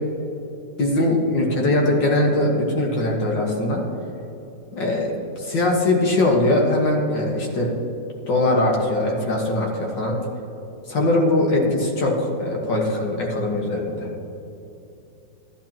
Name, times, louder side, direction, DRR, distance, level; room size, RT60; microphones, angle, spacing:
voice 1, 0.8-3.8 4.7-7.7 8.3-10.2 10.9-14.1, left 1 dB, 85° left, -1 dB, 2.2 m, -21 dB
14.0 x 11.0 x 2.9 m, 2.9 s
omnidirectional pair, 1.9 m